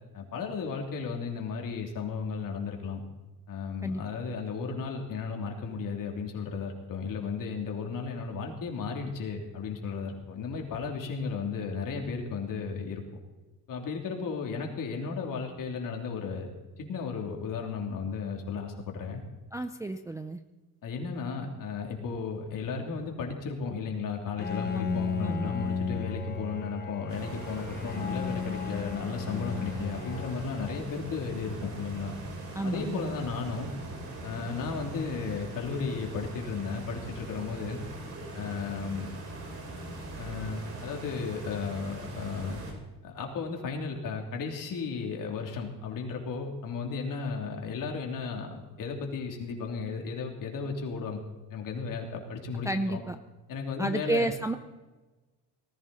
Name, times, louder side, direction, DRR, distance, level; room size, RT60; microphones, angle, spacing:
voice 1, 0.1-3.0 3.5-13.0 13.7-16.5 16.8-19.2 20.8-32.1 32.6-33.7 34.2-37.8 38.3-39.1 40.2-42.6 43.0-51.2 51.5-53.0 53.5-54.3, left 5 dB, 55° left, 2 dB, 3.1 m, -34 dB
voice 2, 19.5-20.4 24.7-25.5 32.5-33.3 52.6-53.2 53.8-54.5, right 2 dB, 10° right, 7 dB, 0.5 m, -31 dB
Bowed string instrument, 24.4-31.5, left 5 dB, 25° left, 1.3 m, -35 dB
sound 1, 27.1-42.7, right 2 dB, 40° right, 5.0 m, -41 dB
19.0 x 14.5 x 4.1 m, 1.2 s
cardioid pair, 160°, 39 cm